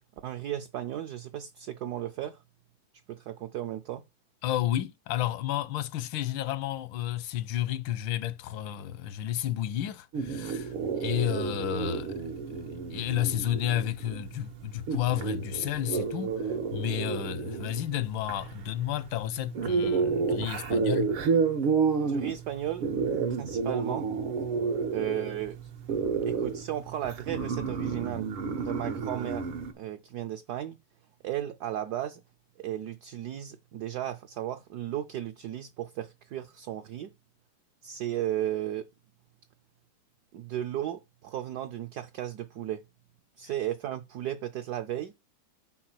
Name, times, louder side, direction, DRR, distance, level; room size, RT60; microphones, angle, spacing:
voice 1, 0.2-2.4 3.1-4.0 22.0-22.9 23.4-24.1 24.9-25.6 26.3-28.3 28.6-29.5 29.7-30.8 31.2-32.2 32.6-37.1 37.8-38.9 40.3-42.8 43.4-45.1, right 12 dB, 70° right, 1.0 m, -35 dB
voice 2, 4.4-10.7 11.0-12.1 12.7-21.1, left 13 dB, 75° left, 1.3 m, -31 dB
sound 1, 10.1-29.7, right 5 dB, 90° right, 2.3 m, -31 dB
5.9 x 4.7 x 5.9 m
omnidirectional pair, 2.3 m